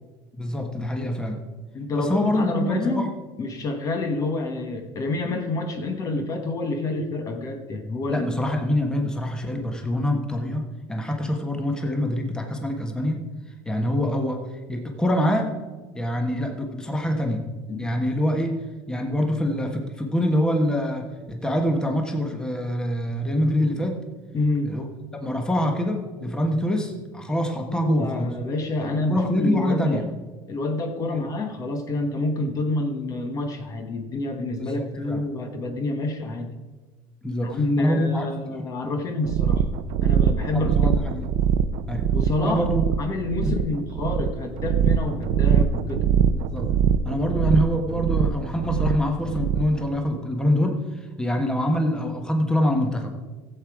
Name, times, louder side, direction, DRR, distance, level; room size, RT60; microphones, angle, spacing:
voice 1, 0.4-1.4 1.9-3.1 8.1-13.3 13.6-15.5 15.9-17.5 17.8-24.0 24.7-24.8 25.1-28.3 28.8-30.0 31.1-31.3 34.6-35.2 37.2-38.5 38.8-38.9 40.5-41.3 41.9-42.1 42.4-42.8 43.4-43.5 46.3-46.7 47.0-50.8 51.2-53.1, left 1 dB, 5° left, 3 dB, 1.3 m, -25 dB
voice 2, 1.7-3.1 3.4-8.4 17.7-17.9 24.3-24.8 27.7-30.1 30.5-36.6 37.4-39.7 40.0-40.9 42.1-42.6 43.0-46.1, left 2 dB, 35° left, 5 dB, 1.3 m, -28 dB
sound 1, 39.3-49.8, right 7 dB, 70° right, 0.6 m, -23 dB
15.5 x 7.8 x 4.8 m, 1.3 s
cardioid pair, 140°, 10 cm